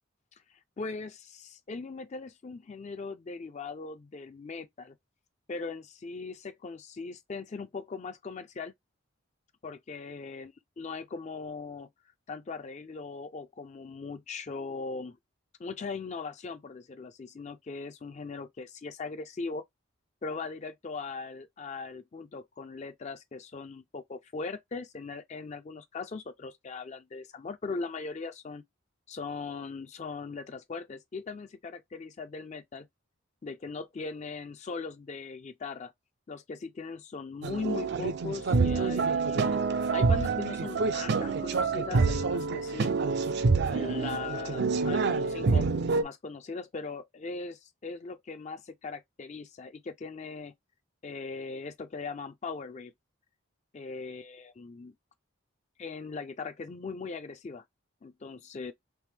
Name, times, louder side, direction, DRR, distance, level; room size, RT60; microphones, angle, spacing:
voice 1, 0.3-5.0 5.5-8.7 9.6-10.5 10.8-11.9 12.3-15.2 15.6-19.6 20.2-28.6 29.1-32.9 33.4-35.9 36.3-39.6 39.9-42.9 43.7-45.7 46.0-50.5 51.0-52.9 53.7-54.9 55.8-57.6 58.0-58.7, left 4 dB, 30° left, 0.3 m, -39 dB
sound 1, 37.4-46.0, right 4 dB, 50° right, 0.4 m, -27 dB
3.3 x 2.9 x 3.2 m
head